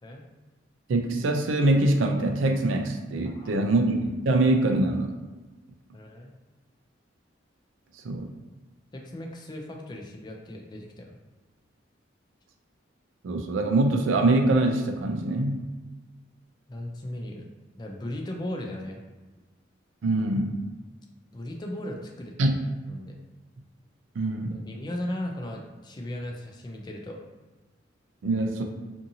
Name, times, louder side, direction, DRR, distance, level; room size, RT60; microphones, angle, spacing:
voice 1, 0.9-5.1 8.0-8.3 13.2-15.6 20.0-20.6 22.4-22.6 24.2-24.6 28.2-28.6, right 2 dB, 85° right, 4 dB, 0.4 m, -24 dB
voice 2, 3.2-3.7 5.9-6.3 8.9-11.2 16.7-17.4 17.7-19.0 21.3-22.6 22.8-23.2 24.5-27.2, left 1 dB, 20° left, 1 dB, 0.3 m, -37 dB
2.6 x 2.6 x 2.6 m, 1.2 s
head